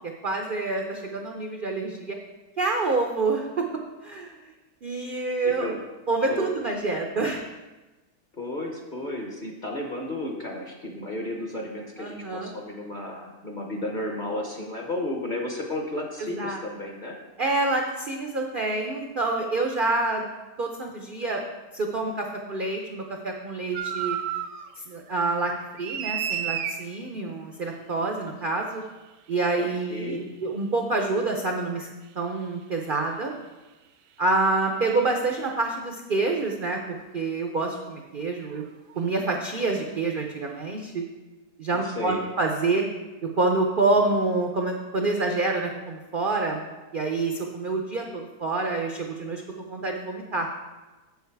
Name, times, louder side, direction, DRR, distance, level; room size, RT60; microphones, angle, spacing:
voice 1, 0.2-2.2 2.6-3.6 4.0-4.3 4.8-5.7 6.1-7.4 12.0-12.5 16.2-16.6 17.4-20.2 20.6-21.4 21.7-24.2 24.9-25.5 25.8-28.8 29.3-31.9 32.2-33.4 34.2-38.6 39.0-41.0 41.6-42.9 43.4-49.4 49.7-50.5, right 3 dB, 60° right, 2 dB, 0.5 m, -27 dB
voice 2, 5.4-5.8 6.3-6.6 8.3-17.2 29.6-30.3 41.8-42.2, left 1 dB, 35° left, 1 dB, 0.8 m, -33 dB
sound 1, 23.7-24.7 25.1-26.8 28.8-28.9 31.8-31.9 34.6-34.7 36.4-36.6 38.4-38.6 38.9-39.1, right 9 dB, 75° right, 1.1 m, -32 dB
7.2 x 7.0 x 4.6 m, 1.2 s
omnidirectional pair, 1.8 m